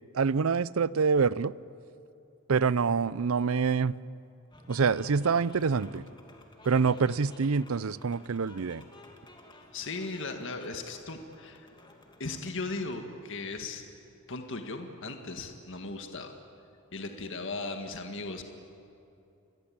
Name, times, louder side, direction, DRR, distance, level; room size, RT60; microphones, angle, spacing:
voice 1, 0.1-1.5 2.5-3.9 4.7-6.0 6.7-8.8, right 5 dB, 65° right, 19 dB, 0.5 m, -26 dB
sound 1, 4.5-13.0, left 2 dB, 20° left, 2.6 m, -54 dB
voice 2, 9.7-11.7 12.2-13.8 14.3-16.4 16.9-18.4, left 3 dB, 55° left, 5 dB, 1.8 m, -37 dB
29.5 x 22.5 x 8.8 m, 2.8 s
head